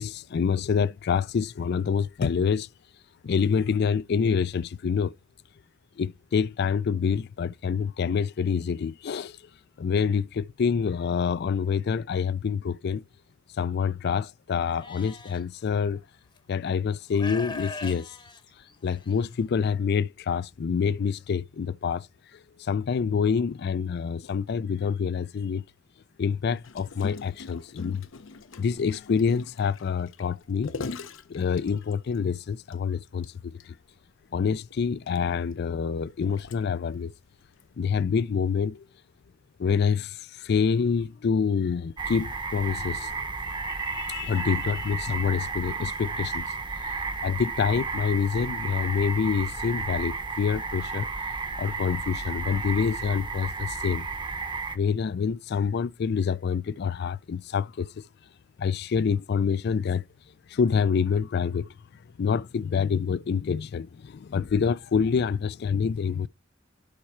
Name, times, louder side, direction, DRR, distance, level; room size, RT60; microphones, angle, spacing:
voice 1, 0.0-2.7 3.2-5.1 6.0-9.4 9.8-13.0 13.6-16.0 16.5-18.1 18.8-22.1 22.6-25.6 26.2-28.0 28.6-30.7 31.3-33.3 33.6-33.7 34.3-37.1 37.8-38.8 39.6-43.2 43.4-46.6 47.2-51.1 51.6-54.1 54.7-57.9 58.6-60.0 60.5-61.7 62.2-66.3, left 6 dB, 55° left, 0.4 m, -27 dB
Livestock farm animals working animals, 14.8-15.4 16.4-16.5 17.1-19.2, left 3 dB, 25° left, 0.9 m, -39 dB
Gurgling, 26.6-32.2 32.7-32.8 33.1-33.3 33.6-33.7 34.5-36.9 37.6-37.7, left 4 dB, 75° left, 0.8 m, -41 dB
sound 1, 42.0-54.8, right 4 dB, 25° right, 0.8 m, -33 dB
11.5 x 4.3 x 4.4 m
head